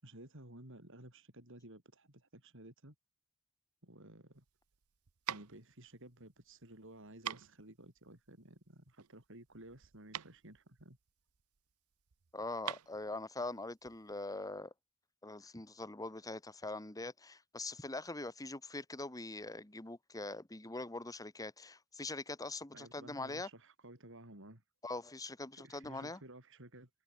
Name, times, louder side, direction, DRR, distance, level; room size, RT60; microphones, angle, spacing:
voice 1, 0.0-3.0 3.8-4.4 5.3-11.0 22.7-24.6 25.5-26.9, right 1 dB, 60° right, 5.6 m, -55 dB
sound 1, 4.3-14.2, right 10 dB, 90° right, 0.8 m, -47 dB
voice 2, 12.3-14.7 15.2-23.5 24.8-26.2, left 2 dB, 15° left, 1.5 m, -43 dB
head